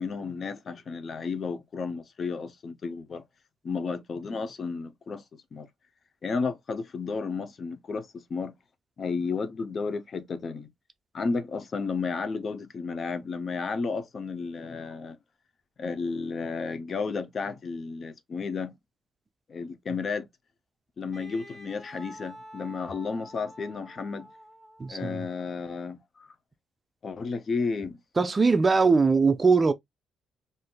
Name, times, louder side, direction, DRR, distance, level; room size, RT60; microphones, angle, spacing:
voice 1, 0.0-3.2 3.6-5.2 5.5-5.7 6.2-8.5 9.0-10.7 11.1-15.2 15.8-18.7 19.5-20.3 21.0-24.3 24.9-26.3 27.0-28.0, left 4 dB, 45° left, 0.5 m, -32 dB
Wind instrument woodwind instrument, 21.1-25.2, equal, 20° left, 1.3 m, -48 dB
voice 2, 24.8-25.2 28.2-29.7, right 4 dB, 30° right, 0.4 m, -21 dB
3.6 x 2.6 x 2.2 m
cardioid pair, 90°, 0 cm